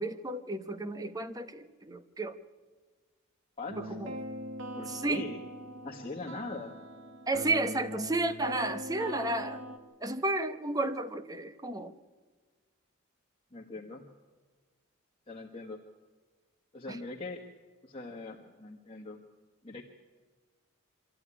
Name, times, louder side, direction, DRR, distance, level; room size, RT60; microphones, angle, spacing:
voice 1, 0.0-2.4 3.8-4.1 4.9-5.3 7.3-9.6 10.0-11.9 16.9-17.0, right 2 dB, 15° right, 9 dB, 0.9 m, -32 dB
voice 2, 3.6-3.9 4.7-5.4 5.8-6.8 13.5-14.0 15.3-15.8 16.7-17.4 17.8-19.2 19.6-19.8, left 3 dB, 25° left, -1 dB, 1.4 m, -41 dB
sound 1, 3.7-9.8, equal, 65° right, 1.6 m, -42 dB
24.0 x 14.0 x 9.9 m, 1.4 s
head